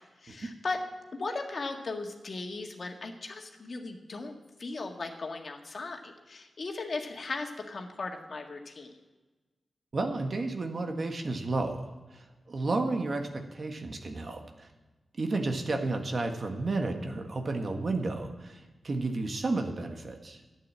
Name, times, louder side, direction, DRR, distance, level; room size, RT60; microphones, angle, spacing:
voice 1, 0.2-0.8 1.1-4.3 4.6-8.9, left 3 dB, 55° left, 3 dB, 1.7 m, -37 dB
voice 2, 9.9-14.7 15.2-20.4, right 3 dB, 55° right, 5 dB, 1.5 m, -32 dB
11.5 x 9.1 x 7.5 m, 1.2 s
cardioid pair, 60°, 0 cm